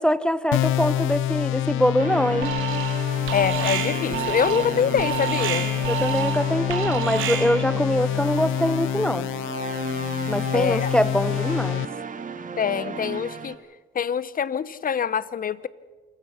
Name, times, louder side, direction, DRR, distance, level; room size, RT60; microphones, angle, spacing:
voice 1, 0.0-2.5 5.9-9.3 10.3-11.8, equal, 5° left, 16 dB, 0.8 m, -23 dB
sound 1, 0.5-11.9, left 12 dB, 85° left, 0.6 m, -27 dB
sound 2, 2.0-13.5, right 6 dB, 40° right, 1.7 m, -35 dB
Alarm, 2.4-3.0 3.3-7.7, right 11 dB, 85° right, 2.7 m, -29 dB
voice 2, 3.3-5.7 10.5-10.9 12.6-13.6 13.9-15.7, left 7 dB, 45° left, 17 dB, 1.0 m, -25 dB
28.0 x 16.5 x 5.8 m, 1.3 s
cardioid pair, 90°, 20 cm